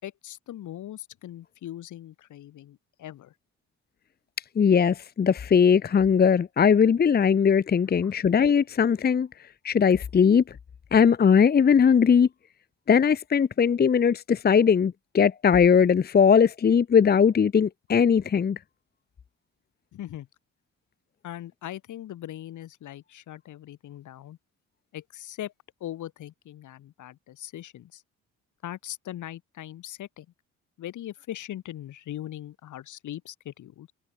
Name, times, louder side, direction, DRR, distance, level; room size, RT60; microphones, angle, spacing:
voice 1, 0.0-3.3 8.0-8.1 19.9-20.3 21.2-24.4 24.9-25.5 25.8-28.0 28.6-30.3 30.8-33.9, left 12 dB, 75° left, 7.1 m, -40 dB
voice 2, 4.6-9.3 9.6-10.5 10.9-12.3 12.9-18.6, left 7 dB, 30° left, 0.8 m, -20 dB
cardioid pair, 90°, 30 cm